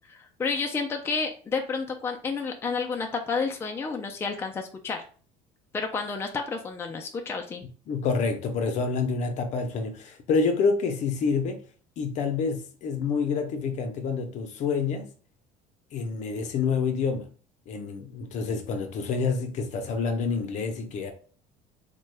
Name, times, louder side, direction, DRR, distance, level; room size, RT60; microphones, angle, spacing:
voice 1, 0.0-5.0 5.7-7.6, left 4 dB, 15° left, 0.4 m, -30 dB
voice 2, 7.9-11.6 12.0-15.1 15.9-17.3 17.7-21.1, left 5 dB, 50° left, 0.6 m, -27 dB
3.4 x 2.2 x 3.2 m
cardioid pair, 120°, 15 cm